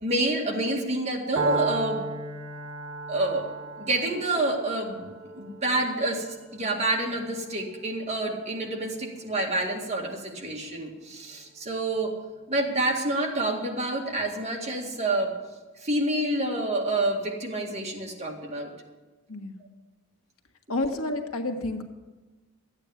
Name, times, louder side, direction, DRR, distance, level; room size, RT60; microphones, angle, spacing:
voice 1, 0.0-2.1 3.1-3.5 3.8-5.1 5.4-12.1 12.5-15.4 15.8-18.7, right 2 dB, 30° right, 0 dB, 2.1 m, -28 dB
Piano, 1.4-9.3, right 3 dB, 65° right, 1.6 m, -35 dB
voice 2, 19.3-19.6 20.7-21.8, left 2 dB, 90° left, 5 dB, 1.5 m, -30 dB
13.5 x 8.9 x 7.2 m, 1.2 s
head